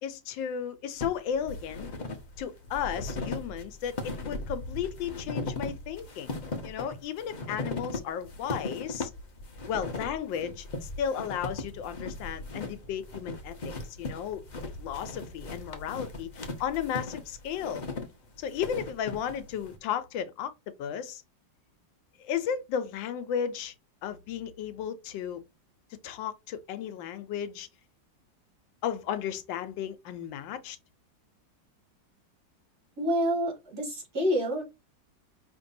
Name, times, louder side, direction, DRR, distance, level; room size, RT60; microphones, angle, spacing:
voice 1, 0.0-1.9 2.4-6.3 6.6-9.1 9.7-14.4 14.8-16.3 16.6-17.8 18.4-20.5 20.8-21.2 22.2-23.7 24.0-25.4 26.0-27.7 28.8-30.8, left 8 dB, 85° left, 1.4 m, -34 dB
sound 1, 1.0-19.8, left 2 dB, 45° left, 0.6 m, -38 dB
voice 2, 33.0-34.6, equal, 55° right, 2.4 m, -28 dB
5.2 x 3.2 x 2.6 m
omnidirectional pair, 2.0 m